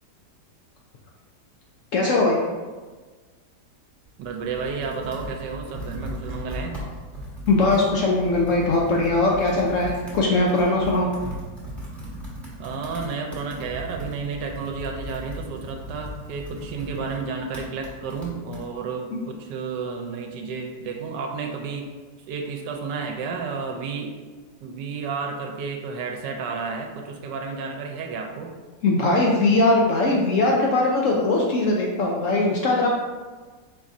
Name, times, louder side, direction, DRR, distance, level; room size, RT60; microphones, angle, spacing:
voice 1, 1.9-2.4 7.5-11.1 28.8-32.9, left 2 dB, 75° left, -1 dB, 0.7 m, -20 dB
Computer keyboard, 4.0-18.7, equal, ahead, 0.8 m, -37 dB
voice 2, 4.2-6.8 12.6-21.9 22.3-24.1 24.6-28.5, right 5 dB, 80° right, 2 dB, 1.2 m, -31 dB
4.7 x 4.0 x 2.5 m, 1.4 s
omnidirectional pair, 1.9 m